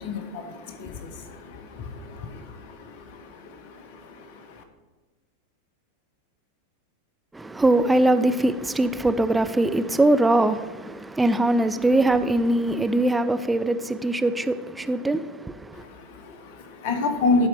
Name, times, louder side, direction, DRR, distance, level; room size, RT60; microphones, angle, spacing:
voice 1, 0.0-4.6 15.7-17.5, left 3 dB, 50° left, 0.8 m, -30 dB
voice 2, 7.3-15.8, right 2 dB, 10° right, 0.3 m, -22 dB
10.5 x 4.3 x 4.2 m
figure-of-eight pair, 90°, 0 cm